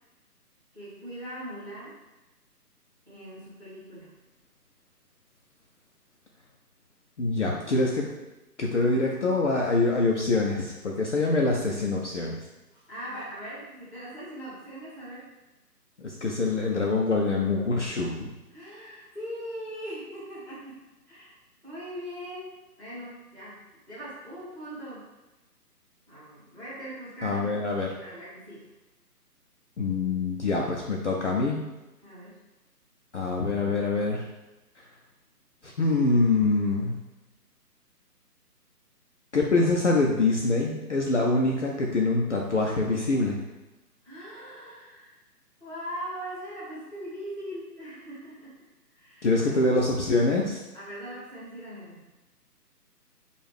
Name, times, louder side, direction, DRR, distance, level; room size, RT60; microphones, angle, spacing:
voice 1, 0.7-2.0 3.0-4.2 12.7-15.3 18.5-21.3 21.6-25.1 26.1-28.7 32.0-32.4 44.0-45.2 45.6-48.5 48.9-49.9 50.7-52.1, equal, ahead, -22 dB, 0.9 m, -41 dB
voice 2, 7.2-8.1 8.6-12.4 16.0-18.3 27.2-27.9 29.8-31.6 33.1-34.2 34.8-34.9 35.6-37.0 39.3-43.4 49.2-50.6, left 3 dB, 50° left, -2 dB, 0.5 m, -25 dB
4.5 x 2.4 x 3.3 m, 1.0 s
hypercardioid pair, 155°, 48 cm